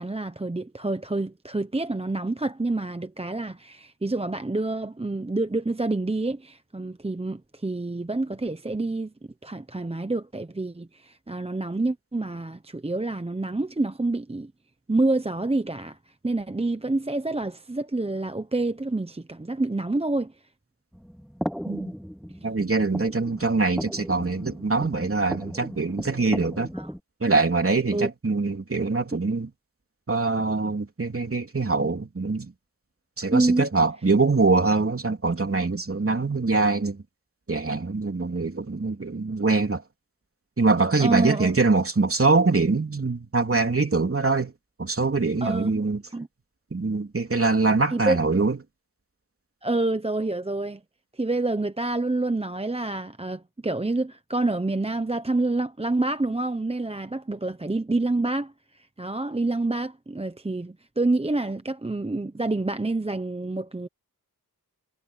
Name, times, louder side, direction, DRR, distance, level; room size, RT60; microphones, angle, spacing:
voice 1, 0.0-9.1 9.4-14.5 14.9-16.0 16.2-20.3 26.7-26.9 27.9-28.1 33.3-33.7 41.0-41.5 45.4-45.8 46.1-46.3 47.9-48.2 49.6-50.8 51.1-63.9, right 2 dB, 15° right, 0.8 m, -27 dB
sound 1, 20.9-27.0, equal, ahead, 2.1 m, -36 dB
voice 2, 22.4-26.7 27.2-29.5 30.1-32.5 33.2-37.0 37.5-39.8 40.6-44.5 44.8-46.0 46.7-48.6, right 3 dB, 35° right, 3.2 m, -23 dB
wide cardioid pair, 85°, 37 cm